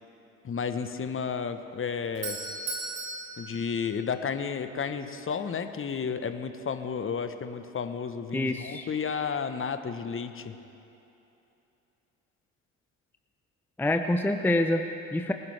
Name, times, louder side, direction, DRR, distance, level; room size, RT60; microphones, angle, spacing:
voice 1, 0.4-2.4 3.4-10.5, left 6 dB, 30° left, 9 dB, 1.1 m, -32 dB
Doorbell, 1.8-4.6, right 3 dB, 85° right, 2.2 m, -38 dB
voice 2, 8.3-8.9 13.8-15.3, left 1 dB, 5° left, 6 dB, 0.7 m, -26 dB
24.0 x 11.5 x 3.4 m, 2.9 s
hypercardioid pair, 60°, 40 cm